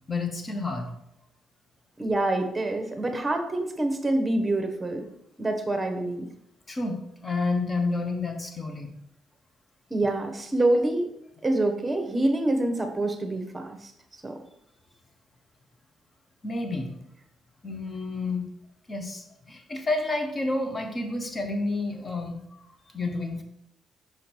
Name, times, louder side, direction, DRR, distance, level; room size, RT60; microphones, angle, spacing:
voice 1, 0.1-0.9 6.7-8.9 16.4-16.9 17.6-18.5 18.9-22.6 22.9-23.4, left 3 dB, 30° left, 4 dB, 1.3 m, -30 dB
voice 2, 2.0-5.1 5.4-6.3 9.9-11.1 11.4-13.9 14.2-14.3, right 2 dB, 20° right, 6 dB, 1.2 m, -26 dB
6.0 x 5.0 x 4.6 m, 0.77 s
cardioid pair, 90°, 0 cm